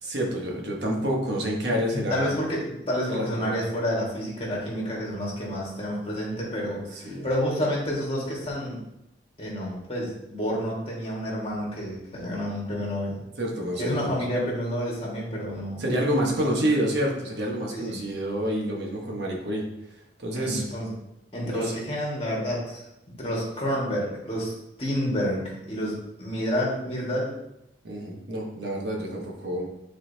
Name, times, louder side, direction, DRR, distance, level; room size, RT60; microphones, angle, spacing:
voice 1, 0.0-2.3 3.1-3.6 6.9-7.3 13.4-14.2 15.8-19.6 19.9-20.6 21.5-21.7 27.8-29.7, equal, 70° right, -1 dB, 1.3 m, -28 dB
voice 2, 1.9-8.8 9.4-13.2 13.8-16.8 17.7-18.0 20.4-20.9 21.3-22.8 23.2-27.3, equal, 35° left, -4 dB, 1.9 m, -29 dB
9.2 x 4.2 x 2.8 m, 0.87 s
head